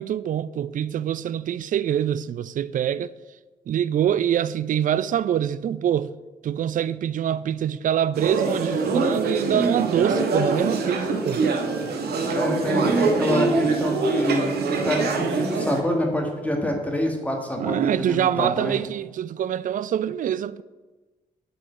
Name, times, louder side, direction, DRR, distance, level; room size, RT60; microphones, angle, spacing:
voice 1, 0.0-3.1 3.7-6.1 6.4-11.4 17.6-20.6, right 10 dB, 50° right, 0.4 m, -25 dB
sound 1, 8.1-15.8, right 3 dB, 65° right, 1.0 m, -24 dB
voice 2, 12.3-17.8 18.1-18.7, left 1 dB, 10° left, 1.7 m, -26 dB
6.2 x 4.9 x 5.7 m
hypercardioid pair, 40°, 18 cm